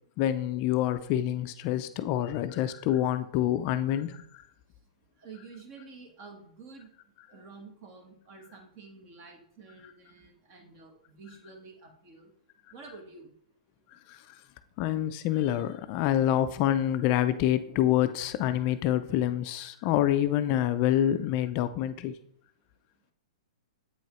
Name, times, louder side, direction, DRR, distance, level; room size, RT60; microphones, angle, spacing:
voice 1, 0.2-4.4 14.1-14.4 14.8-22.2, left 12 dB, 35° left, 11 dB, 0.3 m, -27 dB
voice 2, 5.2-6.9 7.3-12.3 12.7-13.3, right 4 dB, 40° right, 4 dB, 1.4 m, -49 dB
8.2 x 4.6 x 3.1 m, 0.66 s
hypercardioid pair, 140°, 4 cm